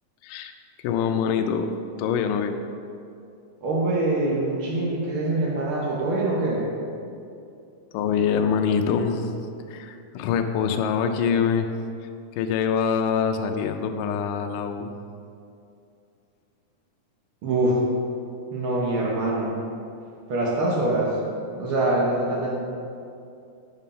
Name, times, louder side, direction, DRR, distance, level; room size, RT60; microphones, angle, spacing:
voice 1, 0.8-2.5 7.9-9.3 9.7-11.7 12.0-14.9, left 6 dB, 80° left, 5 dB, 2.1 m, -25 dB
voice 2, 3.6-6.7 17.4-17.8 18.5-19.5 20.3-21.2 21.5-22.6, right 2 dB, 85° right, -3 dB, 1.1 m, -24 dB
9.0 x 5.5 x 5.6 m, 2.6 s
omnidirectional pair, 4.0 m